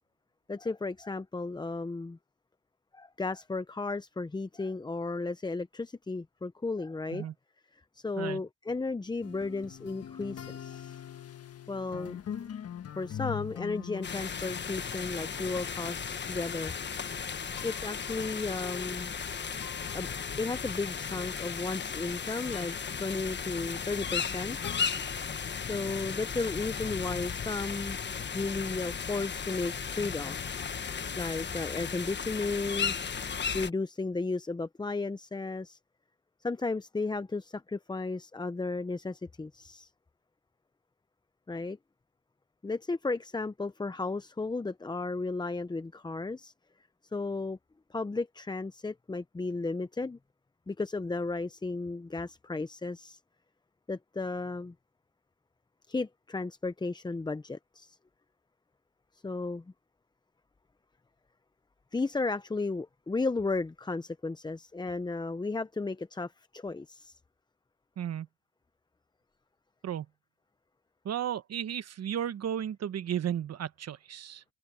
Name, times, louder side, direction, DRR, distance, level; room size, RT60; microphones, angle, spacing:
voice 1, 0.5-2.2 2.9-7.3 7.9-11.0 11.7-12.2 13.0-16.7 17.6-19.1 19.9-20.1 20.4-22.7 23.0-24.6 25.7-28.0 28.3-30.5 31.2-32.9 33.5-35.8 36.4-39.9 41.5-41.8 42.6-46.5 47.1-47.6 47.9-50.2 50.7-53.2 53.9-54.7 55.9-58.0 59.2-59.6 61.9-67.2, left 3 dB, 15° left, 0.7 m, -34 dB
sound 1, 9.2-24.9, left 9 dB, 50° left, 1.5 m, -45 dB
sound 2, 14.0-33.7, left 6 dB, 35° left, 1.4 m, -35 dB
voice 2, 68.0-68.3 69.8-70.1 71.0-74.4, right 9 dB, 55° right, 1.3 m, -34 dB
cardioid pair, 90°, 30 cm